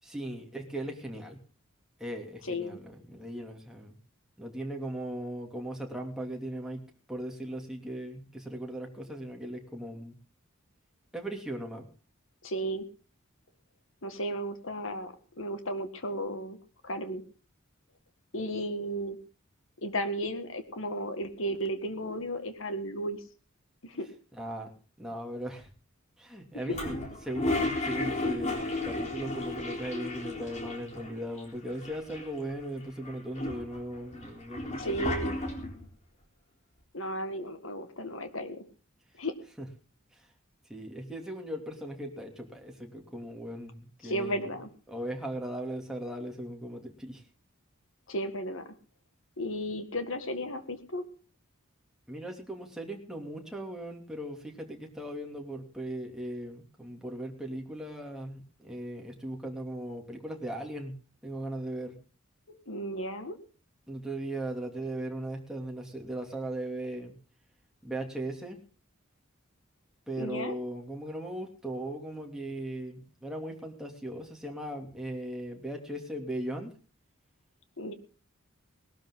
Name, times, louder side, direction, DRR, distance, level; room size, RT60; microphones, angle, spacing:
voice 1, 0.0-1.4 2.0-4.0 4.4-6.8 7.1-10.2 11.1-11.9 24.3-24.7 25.0-25.7 26.2-27.0 27.2-35.1 39.6-39.7 40.2-40.3 40.7-44.5 44.9-47.2 52.1-60.9 61.2-62.0 63.9-67.1 67.8-68.6 70.1-76.7, right 1 dB, 5° right, 1 dB, 2.8 m, -38 dB
voice 2, 2.4-2.8 12.4-12.9 14.0-16.6 16.8-17.2 18.3-19.2 19.8-23.2 23.8-24.1 26.5-26.8 34.8-35.3 36.9-38.7 39.2-39.4 44.0-44.7 48.1-48.8 49.4-51.0 62.5-63.4 70.2-70.6 77.8-77.9, equal, 70° left, 9 dB, 1.9 m, -34 dB
Toilet flush, 26.7-31.1 31.4-31.5 31.7-32.5 33.0-35.9, left 2 dB, 35° left, 3.9 m, -33 dB
19.0 x 13.0 x 3.8 m, 0.38 s
head